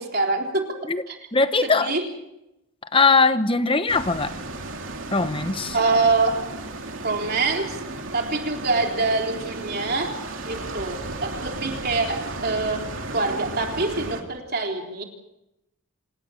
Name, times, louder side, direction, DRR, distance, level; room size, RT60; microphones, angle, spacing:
voice 1, 0.0-0.8 1.1-1.2 1.6-2.0 5.7-6.5 7.0-7.8 8.1-10.2 10.4-15.0, right 3 dB, 45° right, 2 dB, 3.8 m, -25 dB
voice 2, 1.3-1.9 2.9-4.3 5.1-5.7, left 4 dB, 25° left, 11 dB, 1.1 m, -20 dB
sound 1, 3.9-14.2, right 2 dB, 65° right, 3.0 m, -34 dB
27.0 x 18.5 x 6.5 m, 0.89 s
head